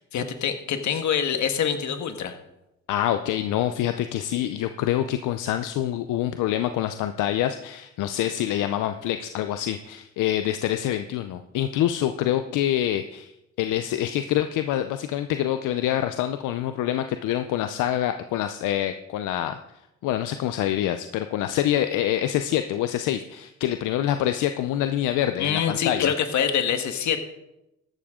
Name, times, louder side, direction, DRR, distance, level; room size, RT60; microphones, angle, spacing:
voice 1, 0.1-2.4 25.4-27.2, left 8 dB, 70° left, 8 dB, 1.5 m, -25 dB
voice 2, 2.9-13.3 13.6-19.6 20.0-26.1, left 12 dB, 90° left, 9 dB, 0.7 m, -26 dB
14.5 x 12.0 x 3.7 m, 0.90 s
cardioid pair, 90°, 30 cm